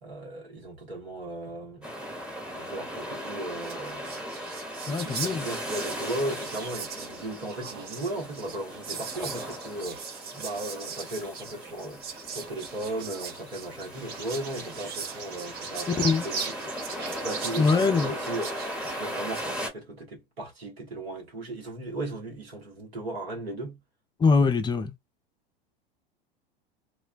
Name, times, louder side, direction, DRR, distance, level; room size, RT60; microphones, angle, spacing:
voice 1, 0.0-1.9 2.5-4.3 4.9-12.0 12.3-16.7 17.2-23.8, right 1 dB, 85° right, 1.2 m, -36 dB
sound 1, 1.8-19.7, equal, 5° right, 1.1 m, -38 dB
Whispering, 3.3-3.4 3.5-19.5, right 6 dB, 30° right, 0.7 m, -41 dB
voice 2, 4.9-5.5 16.0-16.3 17.6-18.1 24.2-24.9, left 4 dB, 15° left, 0.4 m, -23 dB
Bird vocalization bird call bird song, 13.9-19.0, right 5 dB, 60° right, 1.1 m, -39 dB
2.4 x 2.1 x 2.4 m
hypercardioid pair, 90°, 30 cm